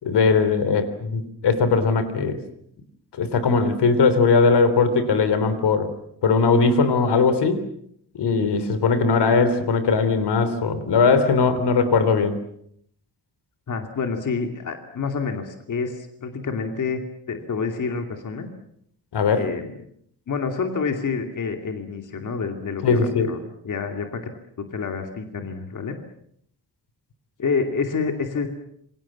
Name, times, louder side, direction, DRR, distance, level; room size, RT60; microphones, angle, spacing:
voice 1, 0.0-2.4 3.2-5.9 6.2-7.6 8.1-12.3 19.1-19.5 22.8-23.3, left 4 dB, 80° left, 12 dB, 3.5 m, -19 dB
voice 2, 13.7-18.5 19.3-19.7 20.3-23.4 23.6-24.3 24.6-26.0 27.4-28.5, left 5 dB, 50° left, 5 dB, 2.7 m, -28 dB
27.5 x 24.0 x 7.4 m, 0.71 s
wide cardioid pair, 175°, 40 cm